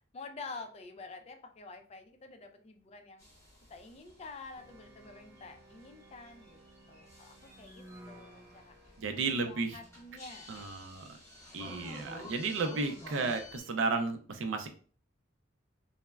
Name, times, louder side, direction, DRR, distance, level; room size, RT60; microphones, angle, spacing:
voice 1, 0.0-3.2 3.7-6.6 6.9-8.8 9.1-10.5, left 3 dB, 35° left, 6 dB, 0.3 m, -48 dB
sound 1, 3.2-13.6, left 1 dB, 15° left, 0.8 m, -52 dB
sound 2, 4.6-10.5, right 1 dB, 15° right, 0.7 m, -57 dB
voice 2, 9.0-9.8 10.5-11.1 11.5-14.7, right 4 dB, 85° right, 7 dB, 0.4 m, -33 dB
3.2 x 2.0 x 2.2 m, 0.41 s
head